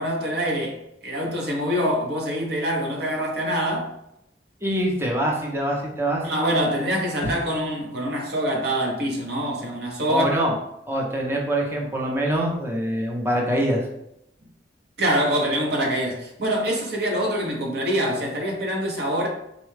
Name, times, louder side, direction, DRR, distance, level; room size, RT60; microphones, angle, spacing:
voice 1, 0.0-3.9 6.2-10.2 15.0-19.3, equal, 65° right, 0 dB, 0.9 m, -25 dB
voice 2, 4.6-6.2 10.1-10.5 10.9-13.8, right 1 dB, 15° right, -1 dB, 0.6 m, -24 dB
3.9 x 2.2 x 3.2 m, 0.82 s
head